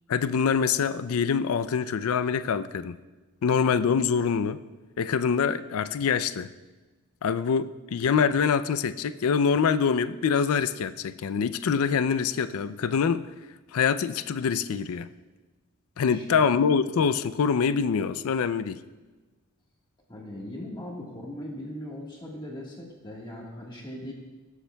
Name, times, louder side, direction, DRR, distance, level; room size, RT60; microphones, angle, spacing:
voice 1, 0.1-3.0 3.4-4.6 5.0-6.5 7.2-13.2 13.7-15.1 16.0-18.8, left 6 dB, 75° left, 13 dB, 0.4 m, -25 dB
voice 2, 16.0-16.4 20.1-24.1, left 1 dB, 20° left, -2 dB, 1.4 m, -39 dB
19.5 x 7.1 x 2.2 m, 1.2 s
head